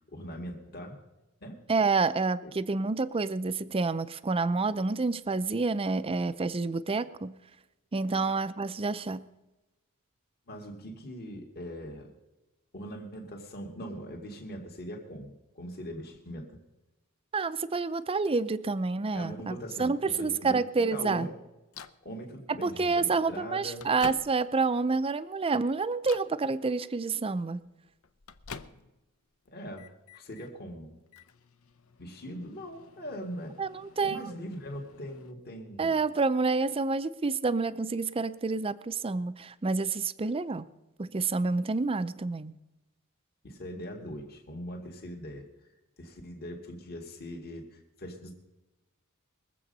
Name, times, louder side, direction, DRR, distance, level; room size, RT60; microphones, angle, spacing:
voice 1, 0.1-1.0 1.4-1.6 2.4-2.5 8.1-8.3 10.5-12.1 12.7-16.6 19.1-20.6 20.9-21.4 22.0-23.9 29.5-31.0 32.0-33.6 34.0-35.9 43.4-45.5 46.0-48.3, equal, 45° left, 0 dB, 2.1 m, -41 dB
voice 2, 1.7-7.4 7.9-9.3 17.3-21.3 22.5-27.6 33.6-34.3 35.8-40.7 41.0-42.5, right 4 dB, 25° right, 13 dB, 0.5 m, -28 dB
Microwave oven, 21.7-22.0 23.0-23.1 23.6-24.7 25.2-25.5 26.0-26.4 27.6-29.1 29.5-30.5 31.1-35.3, left 6 dB, 75° left, 0.7 m, -49 dB
22.0 x 7.7 x 5.4 m, 1.0 s
head